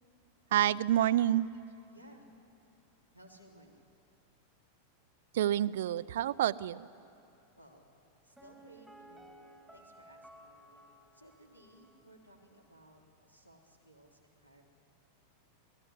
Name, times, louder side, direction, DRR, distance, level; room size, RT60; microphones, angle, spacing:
voice 1, 0.5-1.5 5.3-6.9, right 12 dB, 55° right, 17 dB, 0.5 m, -28 dB
voice 2, 1.9-2.3 3.1-3.8 7.6-7.8 8.2-9.3 9.7-10.8 11.1-14.6, right 1 dB, 85° left, 1 dB, 3.4 m, -59 dB
Piano, 8.4-12.1 12.4-12.5, right 1 dB, ahead, 2.7 m, -57 dB
28.5 x 17.5 x 9.8 m, 2.6 s
figure-of-eight pair, 90°, 0 cm